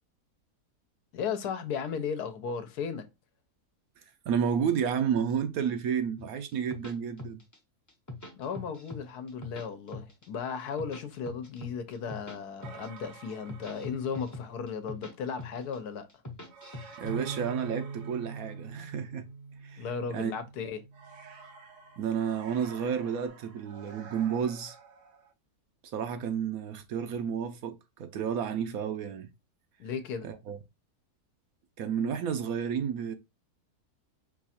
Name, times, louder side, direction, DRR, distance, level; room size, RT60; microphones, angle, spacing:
voice 1, 1.1-3.1 8.4-16.1 19.8-20.8 29.8-30.3, left 6 dB, 75° left, 1.2 m, -35 dB
voice 2, 4.3-7.4 17.0-19.3 19.6-19.8 20.1-20.3 22.0-24.8 25.8-29.3 30.2-30.6 31.8-33.1, right 7 dB, 70° right, 1.0 m, -31 dB
sound 1, 6.2-7.6 7.9-9.0 9.3-10.3 10.6-12.4 12.6-13.0 13.3-15.1 15.4-15.8 16.1-17.2, left 2 dB, 20° left, 0.5 m, -42 dB
sound 2, 12.6-14.4 16.5-19.0 20.9-25.3, right 5 dB, 85° right, 1.6 m, -50 dB
Bass guitar, 17.0-21.5 22.1-23.3, right 5 dB, 40° right, 0.7 m, -43 dB
4.6 x 2.4 x 4.2 m
omnidirectional pair, 1.7 m